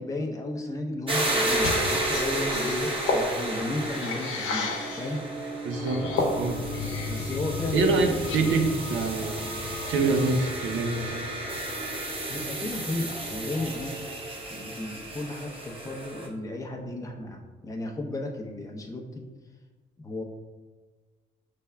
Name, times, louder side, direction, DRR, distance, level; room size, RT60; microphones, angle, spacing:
voice 1, 0.0-5.2 7.1-8.5 12.3-14.0 14.5-19.3 20.0-20.2, left 2 dB, 15° left, 1 dB, 0.6 m, -34 dB
sound 1, 1.1-16.3, right 1 dB, 25° right, 0.9 m, -32 dB
sound 2, 1.5-5.2 5.7-7.4 7.8-8.8, left 2 dB, 75° left, 0.8 m, -32 dB
voice 2, 5.6-6.0 6.3-6.6 7.7-8.6 8.9-9.4 9.9-11.2, right 3 dB, 75° right, 4 dB, 0.6 m, -25 dB
sound 3, 5.7-14.8 15.2-15.3, left 4 dB, 60° left, 0.5 m, -39 dB
5.4 x 3.4 x 2.2 m, 1.4 s
cardioid pair, 90°, 20 cm